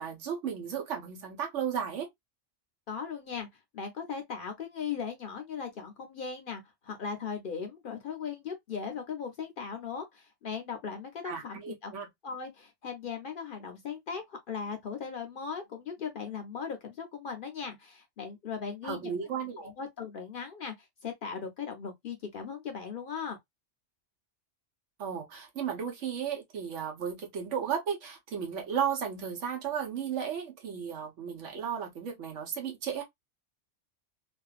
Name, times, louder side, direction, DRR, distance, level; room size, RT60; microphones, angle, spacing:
voice 1, 0.0-2.1 11.2-12.1 18.8-19.7 25.0-33.0, right 7 dB, 80° right, 1.1 m, -34 dB
voice 2, 2.9-3.5 3.7-11.9 12.2-19.1 19.6-23.4, left 6 dB, 55° left, 0.6 m, -38 dB
2.5 x 2.3 x 2.3 m
omnidirectional pair, 1.2 m